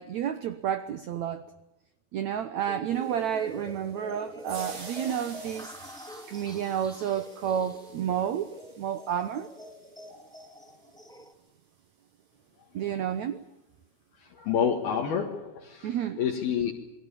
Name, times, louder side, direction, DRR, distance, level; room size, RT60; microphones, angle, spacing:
voice 1, 0.0-1.4 2.1-5.7 6.3-9.5 12.7-13.4 15.8-16.2, right 9 dB, 85° right, 1.6 m, -30 dB
sound 1, 2.6-11.3, equal, 5° left, 0.5 m, -45 dB
sound 2, 2.9-11.2, right 4 dB, 50° right, 6.2 m, -50 dB
voice 2, 14.3-16.7, left 7 dB, 65° left, 3.7 m, -28 dB
28.5 x 21.5 x 7.1 m
omnidirectional pair, 4.8 m